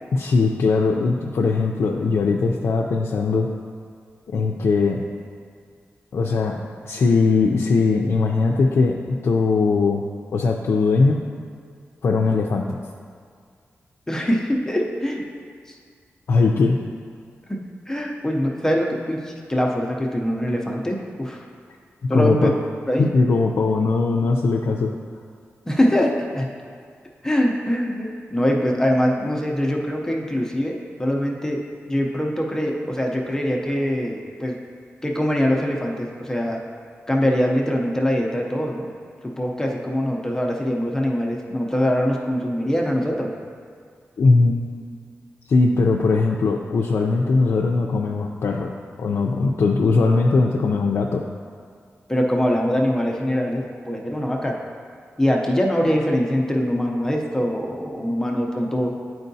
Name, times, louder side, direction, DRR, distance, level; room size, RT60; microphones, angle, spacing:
voice 1, 0.1-3.5 4.3-5.0 6.1-6.6 6.8-10.0 10.3-11.2 12.0-12.8 16.3-16.8 22.1-22.5 23.0-24.9 44.2-44.5 45.5-48.7 49.0-51.2, left 3 dB, 65° left, 0 dB, 0.4 m, -20 dB
voice 2, 14.1-15.2 15.7-15.8 17.5-17.6 17.9-21.4 22.1-22.5 22.9-23.1 25.7-26.5 27.2-34.6 35.0-36.6 37.1-38.9 39.2-43.3 52.1-54.6 55.2-58.9, equal, 10° left, 0 dB, 0.6 m, -23 dB
10.5 x 4.5 x 2.7 m, 2.1 s
wide cardioid pair, 140°, 5 cm